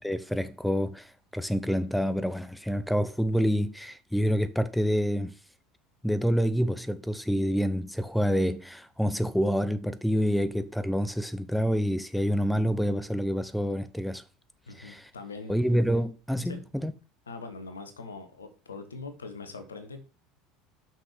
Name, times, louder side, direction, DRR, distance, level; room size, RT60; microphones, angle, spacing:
voice 1, 0.0-5.3 6.0-14.2 14.7-15.1 15.5-16.9, equal, ahead, 0.7 m, -27 dB
voice 2, 14.7-15.6 16.4-16.6 17.3-20.0, left 4 dB, 80° left, 1.5 m, -42 dB
6.4 x 6.1 x 6.5 m
figure-of-eight pair, 70°, 0 cm